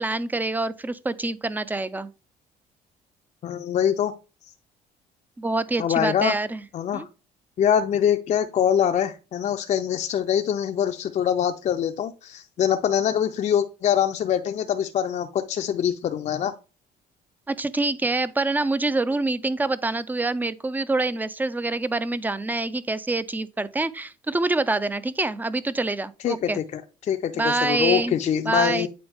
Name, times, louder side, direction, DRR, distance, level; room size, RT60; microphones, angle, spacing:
voice 1, 0.0-2.1 5.4-6.6 6.9-7.1 17.5-26.6 27.4-28.2 28.4-28.9, right 2 dB, 10° right, 0.4 m, -26 dB
voice 2, 3.4-4.1 5.8-6.4 6.7-7.1 7.6-16.5 26.2-28.9, left 9 dB, 45° left, 0.5 m, -24 dB
8.7 x 4.0 x 3.4 m
cardioid pair, 110°, 17 cm